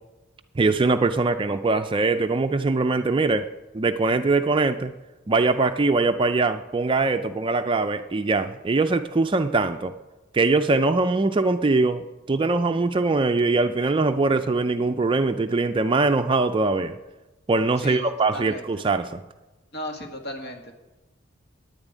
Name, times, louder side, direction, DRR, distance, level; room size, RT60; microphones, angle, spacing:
voice 1, 0.6-3.5 3.7-4.9 5.3-9.9 10.3-17.0 17.5-19.2, right 3 dB, 25° right, 9 dB, 0.4 m, -22 dB
voice 2, 17.8-18.6 19.7-20.6, left 1 dB, 60° left, 3 dB, 1.8 m, -35 dB
9.8 x 7.2 x 9.3 m, 1.1 s
head